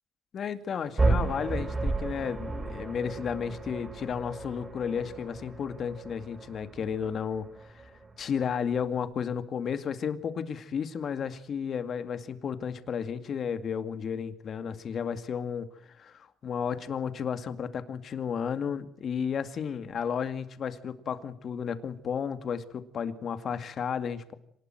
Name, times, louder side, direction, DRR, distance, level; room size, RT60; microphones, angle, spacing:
voice 1, 0.3-7.9 8.2-24.3, left 7 dB, 60° left, 10 dB, 2.2 m, -33 dB
sound 1, 1.0-9.0, right 3 dB, 25° right, 7.6 m, -33 dB
25.5 x 20.0 x 7.8 m, 0.69 s
cardioid pair, 75°, 0 cm